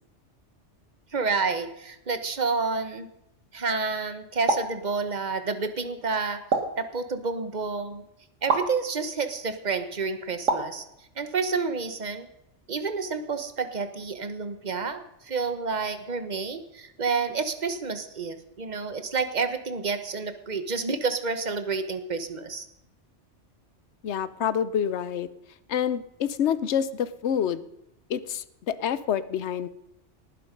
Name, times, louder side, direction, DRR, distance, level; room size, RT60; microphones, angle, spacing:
voice 1, 1.1-3.1 3.5-6.4 6.8-8.0 8.4-10.8 11.1-12.3 12.7-22.7, right 4 dB, 35° right, 10 dB, 1.3 m, -29 dB
sound 1, 4.5-4.8 6.5-6.8 8.5-8.7 10.5-10.8, right 4 dB, 80° right, 2.1 m, -25 dB
voice 2, 24.0-25.3 25.7-27.6 28.1-29.7, left 8 dB, 65° left, 15 dB, 1.0 m, -27 dB
19.0 x 11.0 x 5.3 m, 0.81 s
omnidirectional pair, 1.3 m